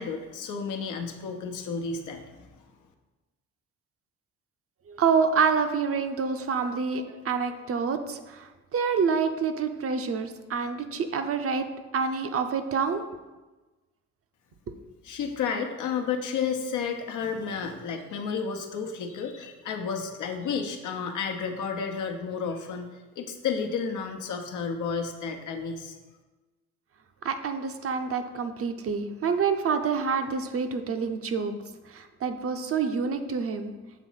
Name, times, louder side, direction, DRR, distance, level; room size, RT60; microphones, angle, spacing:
voice 1, 0.0-2.5 15.0-25.9, left 6 dB, 80° left, 4 dB, 0.9 m, -32 dB
voice 2, 4.9-11.6 11.9-13.0 14.7-14.8 27.2-31.5 31.9-33.7, right 5 dB, 50° right, 7 dB, 0.7 m, -27 dB
7.1 x 3.0 x 5.7 m, 1.2 s
cardioid pair, 90°, 30 cm